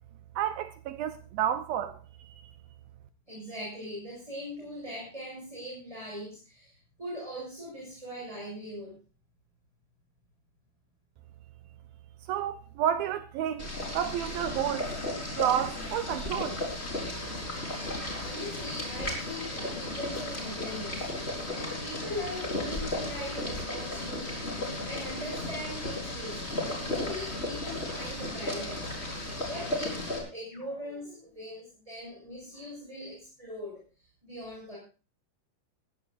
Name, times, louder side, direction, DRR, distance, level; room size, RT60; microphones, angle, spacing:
voice 1, 0.4-2.0 2.2-2.3 12.3-14.9 15.4-16.6, right 10 dB, 75° right, 2.4 m, -30 dB
voice 2, 3.3-9.0 18.1-21.3 21.5-28.9 29.4-33.8 34.2-34.8, equal, 10° right, 6.7 m, -41 dB
Boiling, 13.6-30.2, left 1 dB, 15° left, 4.4 m, -35 dB
sound 1, 24.9-27.4 30.5-31.5, left 3 dB, 65° left, 7.2 m, -54 dB
19.5 x 16.0 x 2.6 m
omnidirectional pair, 4.6 m